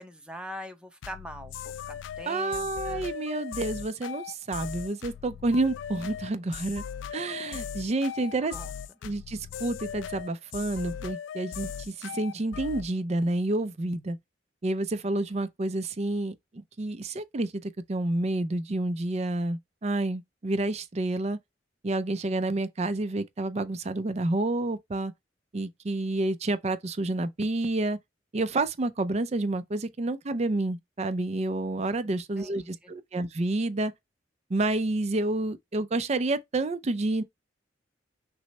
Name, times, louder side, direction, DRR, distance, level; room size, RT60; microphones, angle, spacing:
voice 1, 0.0-3.1 8.5-8.7 32.0-32.9, equal, 5° right, 0.7 m, -43 dB
sound 1, 1.0-12.9, left 8 dB, 90° left, 0.3 m, -39 dB
voice 2, 2.3-6.8 7.1-8.5 9.0-14.2 14.6-21.4 21.8-25.1 25.5-28.0 28.3-33.9 34.5-37.2, right 2 dB, 35° right, 0.5 m, -29 dB
6.1 x 2.1 x 4.1 m
head